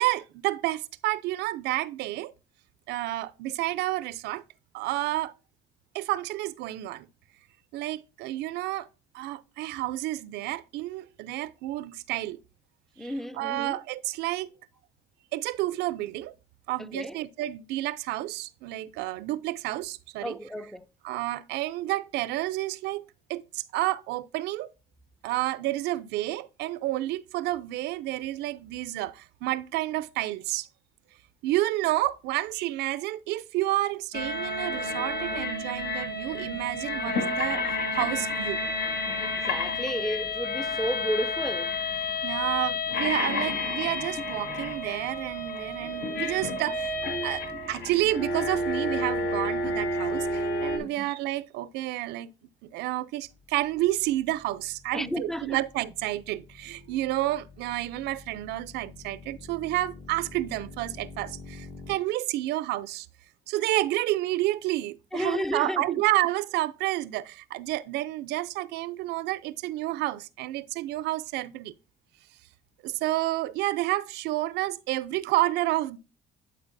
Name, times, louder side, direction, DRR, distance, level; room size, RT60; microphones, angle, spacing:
voice 1, 0.0-2.3 2.9-4.4 4.7-5.3 5.9-7.1 7.7-8.9 9.1-12.4 13.0-14.5 15.3-16.3 16.7-20.4 21.0-23.0 23.3-24.7 25.2-30.7 31.4-37.6 37.9-38.6 42.2-47.0 47.2-52.3 52.6-63.1 63.5-71.7 72.8-76.0, right 16 dB, 85° right, 0.5 m, -30 dB
voice 2, 13.0-13.8 16.9-17.2 20.2-20.8 39.0-41.7 50.8-51.1 54.9-55.6 65.1-65.8, equal, ahead, 0.5 m, -32 dB
sound 1, 34.1-50.8, left 2 dB, 75° left, 1.5 m, -30 dB
sound 2, 53.2-62.0, left 3 dB, 50° left, 1.3 m, -48 dB
11.5 x 4.5 x 2.6 m
cardioid pair, 110°, 17 cm